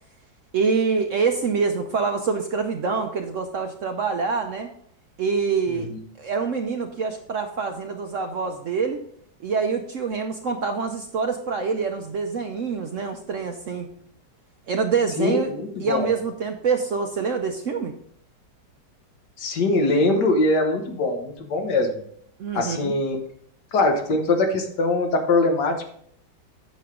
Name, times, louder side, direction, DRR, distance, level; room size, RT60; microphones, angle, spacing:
voice 1, 0.5-4.7 5.2-5.9 6.2-9.0 9.4-13.9 14.7-15.5 15.8-17.9 22.4-22.9, right 5 dB, 60° right, 5 dB, 0.8 m, -25 dB
voice 2, 5.7-6.0 15.2-16.1 19.4-21.9 22.5-23.2 23.7-25.8, left 2 dB, 70° left, 4 dB, 1.8 m, -22 dB
8.8 x 6.5 x 3.7 m, 0.65 s
omnidirectional pair, 1.9 m